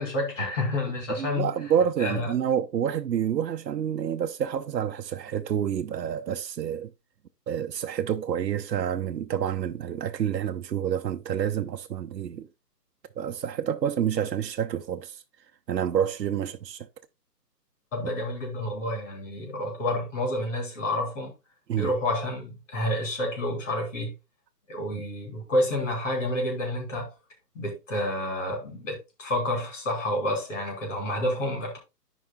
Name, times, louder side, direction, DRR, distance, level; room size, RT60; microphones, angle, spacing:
voice 1, 0.0-1.5 2.0-2.3 17.9-21.3 21.7-24.1 24.7-27.1 27.6-31.8, left 1 dB, 50° left, 3.7 m, -29 dB
voice 2, 1.2-6.9 7.5-12.5 13.2-15.2 15.7-16.9 21.7-21.9 24.9-25.0, right 9 dB, 85° right, 0.8 m, -28 dB
13.5 x 5.1 x 2.3 m
hypercardioid pair, 175°, 49 cm